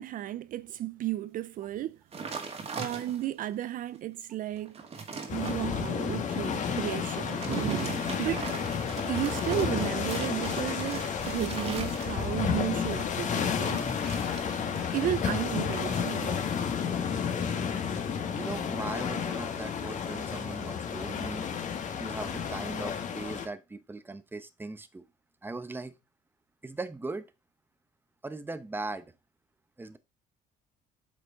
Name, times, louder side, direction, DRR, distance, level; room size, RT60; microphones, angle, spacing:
voice 1, 0.0-2.0 2.8-4.9 5.3-8.5 9.1-13.8 14.9-16.5, right 13 dB, 55° right, 0.4 m, -33 dB
sound 1, 2.1-3.4 3.9-4.0 4.5-5.6 7.2-12.4 13.5-15.2 15.4-15.8, right 5 dB, 35° right, 1.9 m, -40 dB
sound 2, 5.3-23.5, left 7 dB, 45° left, 1.6 m, -31 dB
voice 2, 18.3-21.5 22.0-25.0 25.4-25.9 26.6-27.3 28.2-29.1 29.8-30.0, right 3 dB, 10° right, 0.9 m, -39 dB
8.1 x 5.0 x 3.7 m
cardioid pair, 110°, 17 cm